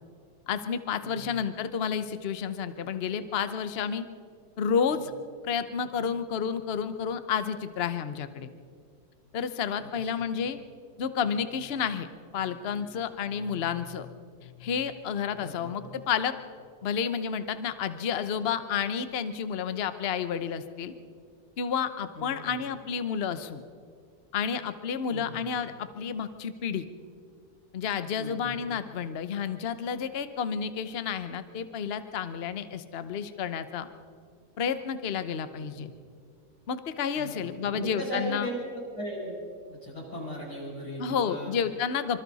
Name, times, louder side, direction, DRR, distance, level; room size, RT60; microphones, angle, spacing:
voice 1, 0.5-4.0 4.6-5.1 5.4-8.5 9.3-10.6 11.0-12.1 12.3-14.1 14.4-16.3 16.8-20.9 21.6-23.6 24.3-26.8 27.7-33.9 34.6-35.9 36.7-38.5 41.0-42.2, left 7 dB, 45° left, 11 dB, 1.0 m, -30 dB
voice 2, 9.8-10.2 15.4-15.9 22.1-22.5 25.1-25.4 28.2-28.6 35.6-35.9 37.2-37.5 37.7-38.6 38.9-39.3 39.7-41.5, equal, 80° left, -4 dB, 7.3 m, -38 dB
26.0 x 25.0 x 4.1 m, 2.2 s
omnidirectional pair, 1.7 m